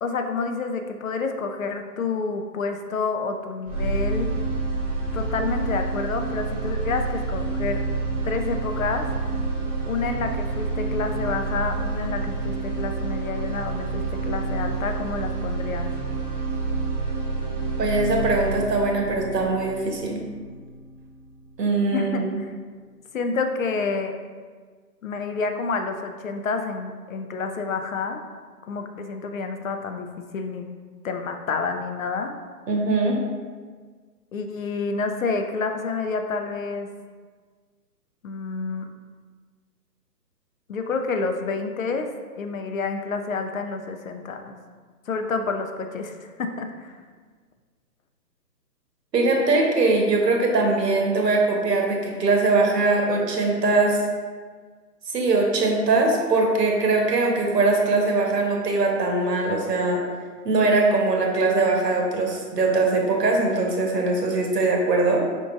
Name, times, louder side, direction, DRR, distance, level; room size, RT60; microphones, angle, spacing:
voice 1, 0.0-4.3 5.1-7.8 8.2-9.1 9.8-15.9 21.9-22.5 23.1-24.2 25.0-28.2 28.7-30.7 31.0-32.3 34.3-36.9 38.2-38.9 40.7-42.1 42.3-44.6 45.1-47.0, left 4 dB, 55° left, 6 dB, 0.5 m, -29 dB
sound 1, 3.7-21.7, right 3 dB, 10° right, 0.6 m, -28 dB
voice 2, 17.8-20.2 21.6-22.4 32.7-33.2 49.1-54.0 55.1-60.0 60.4-65.2, right 3 dB, 80° right, 1 dB, 1.1 m, -21 dB
5.2 x 3.6 x 2.5 m, 1.6 s
hypercardioid pair, 155°, 48 cm